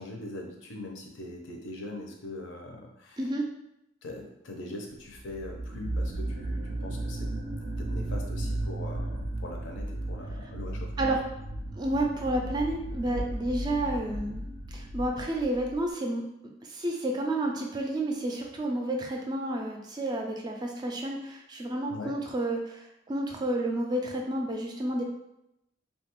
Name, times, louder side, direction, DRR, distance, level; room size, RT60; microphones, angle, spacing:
voice 1, 0.0-3.3 4.0-7.3 7.8-11.2 21.9-22.1, left 2 dB, 75° left, 1 dB, 0.6 m, -41 dB
voice 2, 3.2-3.5 11.0-11.2 11.7-14.4 14.7-16.2 16.7-22.8 23.1-25.0, right 1 dB, 20° right, 1 dB, 0.3 m, -30 dB
sound 1, 5.2-15.8, right 1 dB, 90° right, 0.5 m, -35 dB
2.8 x 2.3 x 2.9 m, 0.84 s
head